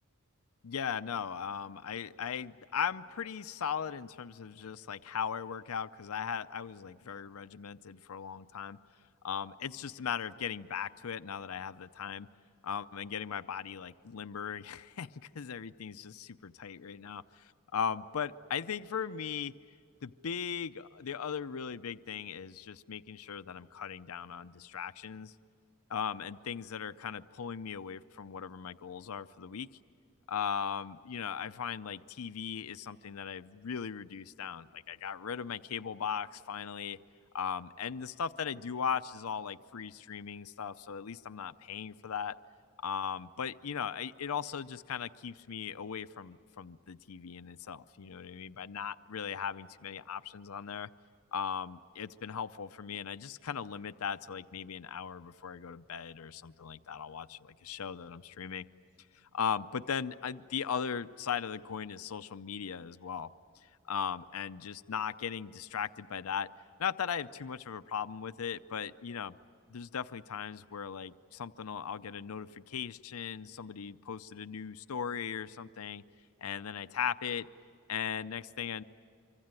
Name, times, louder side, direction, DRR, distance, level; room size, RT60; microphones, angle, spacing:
voice 1, 0.6-8.8 9.2-12.3 12.6-17.4 17.7-19.5 20.0-25.3 25.9-29.7 30.3-37.0 37.3-42.3 42.8-50.9 51.3-58.6 59.3-63.3 63.9-66.5 66.8-69.3 69.7-76.0 76.4-77.5 77.9-78.8, left 7 dB, 75° left, 12 dB, 0.6 m, -38 dB
25.5 x 25.0 x 9.0 m, 2.3 s
head